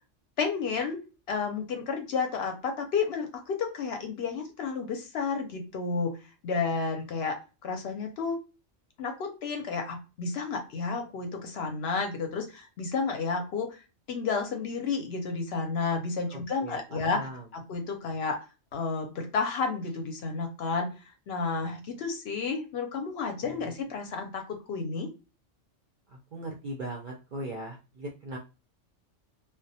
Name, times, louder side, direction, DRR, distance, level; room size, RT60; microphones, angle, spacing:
voice 1, 0.4-6.2 6.4-7.4 7.6-8.4 9.0-13.8 14.1-18.4 18.7-20.9 21.3-25.1, left 4 dB, 65° left, 4 dB, 0.7 m, -31 dB
voice 2, 16.3-17.4 23.4-23.7 26.1-28.4, right 1 dB, 60° right, -1 dB, 0.5 m, -39 dB
2.2 x 2.1 x 2.6 m, 0.30 s
omnidirectional pair, 1.2 m